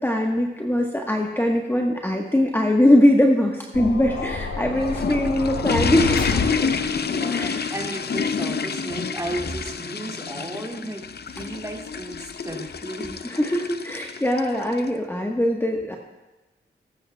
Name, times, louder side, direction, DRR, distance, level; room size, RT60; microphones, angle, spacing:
voice 1, 0.0-6.4 7.3-7.7 13.2-16.0, left 1 dB, 10° left, 0 dB, 1.4 m, -21 dB
sound 1, 3.7-7.1, left 4 dB, 80° left, 1.0 m, -28 dB
sound 2, 4.6-14.9, left 5 dB, 55° left, 0.6 m, -28 dB
voice 2, 6.6-11.0 11.3-13.2, right 1 dB, 15° right, 0 dB, 2.4 m, -34 dB
19.5 x 9.2 x 2.3 m, 1.1 s
cardioid pair, 50°, 20 cm